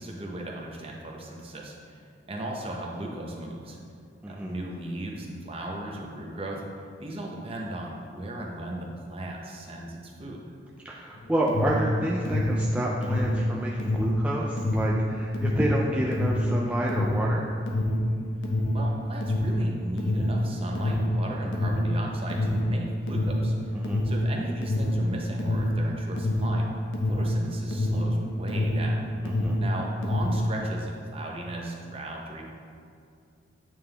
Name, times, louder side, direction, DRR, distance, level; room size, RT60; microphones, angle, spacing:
voice 1, 0.0-3.8 4.3-6.6 7.0-10.4 18.7-23.7 24.0-26.7 27.1-29.1 29.6-32.5, right 1 dB, 30° right, -1 dB, 0.8 m, -36 dB
voice 2, 10.8-17.4 23.7-24.0 29.4-29.6, right 1 dB, 5° right, -4 dB, 0.3 m, -29 dB
Alarm, 11.1-28.9 29.2-30.5, left 1 dB, 85° left, 0.8 m, -26 dB
8.7 x 3.6 x 3.4 m, 2.4 s
head